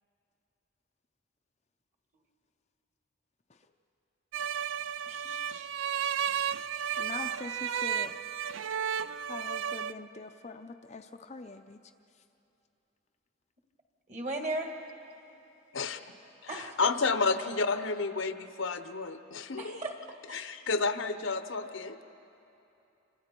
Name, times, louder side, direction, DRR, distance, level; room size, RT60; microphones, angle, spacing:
sound 1, 4.3-9.9, right 8 dB, 70° right, 0.4 m, -33 dB
voice 1, 5.1-5.7 6.9-7.1 14.1-14.7 16.5-16.8 19.6-19.9 20.3-20.5, right 2 dB, 35° right, 3 dB, 1.9 m, -37 dB
voice 2, 7.0-8.1 9.3-11.8, left 3 dB, 30° left, 5 dB, 0.5 m, -43 dB
voice 3, 16.4-19.9 20.3-22.0, left 4 dB, 70° left, 10 dB, 0.9 m, -31 dB
28.0 x 26.0 x 4.5 m, 2.8 s
head